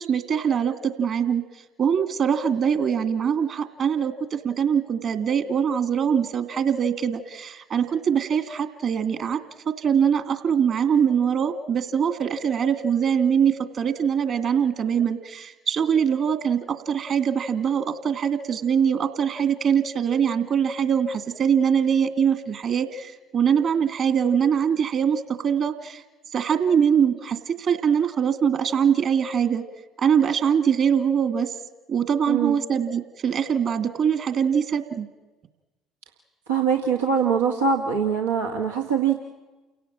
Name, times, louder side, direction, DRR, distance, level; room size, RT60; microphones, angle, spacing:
voice 1, 0.0-1.4 1.8-9.4 9.7-16.6 16.9-26.0 26.3-29.6 30.0-31.5 31.9-35.1, right 7 dB, 50° right, 9 dB, 2.5 m, -23 dB
voice 2, 36.5-39.2, right 6 dB, 85° right, -1 dB, 1.8 m, -23 dB
29.5 x 17.0 x 8.9 m, 1.2 s
hypercardioid pair, 55°, 0 cm